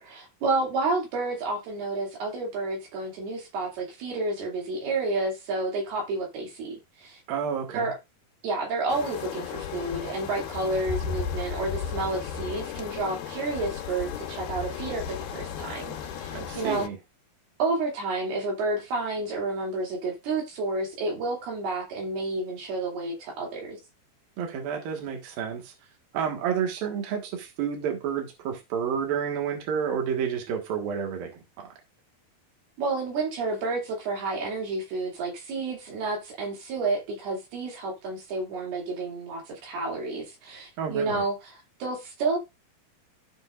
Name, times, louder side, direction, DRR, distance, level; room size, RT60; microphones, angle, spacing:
voice 1, 0.0-7.2 7.7-7.9 8.4-15.1 15.3-16.9 17.6-23.8 32.8-42.4, right 3 dB, 90° right, 4.7 m, -30 dB
voice 2, 7.3-7.9 16.3-17.0 24.4-25.7 26.1-31.3 31.6-31.7 40.8-41.2, right 7 dB, 70° right, 3.4 m, -30 dB
sound 1, 8.9-16.9, left 7 dB, 85° left, 3.1 m, -35 dB
16.0 x 5.4 x 2.5 m
omnidirectional pair, 4.4 m